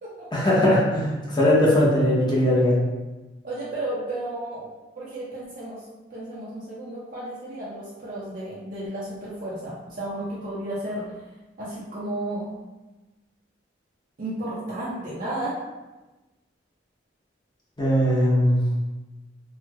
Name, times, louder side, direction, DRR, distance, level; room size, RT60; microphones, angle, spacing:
voice 1, 0.3-2.7 17.8-18.6, left 1 dB, 25° left, -6 dB, 0.7 m, -20 dB
voice 2, 3.4-4.7 5.0-5.8 6.1-11.0 11.6-12.5 14.2-15.6, right 1 dB, 45° right, -8 dB, 0.6 m, -33 dB
4.4 x 2.2 x 2.3 m, 1.1 s
head